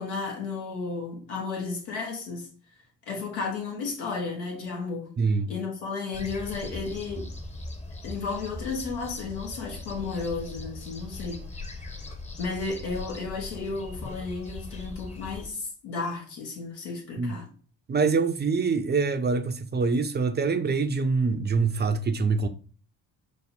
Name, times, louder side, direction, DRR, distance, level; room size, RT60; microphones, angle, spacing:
voice 1, 0.0-2.5 3.1-5.1 5.5-7.3 8.0-11.4 12.4-17.5, left 4 dB, 80° left, 1.1 m, -33 dB
voice 2, 5.2-5.5 17.2-17.4 17.9-22.5, right 4 dB, 20° right, 0.4 m, -25 dB
sound 1, 6.1-15.5, left 2 dB, 15° left, 0.8 m, -40 dB
5.2 x 2.0 x 3.8 m
hypercardioid pair, 45°, 49 cm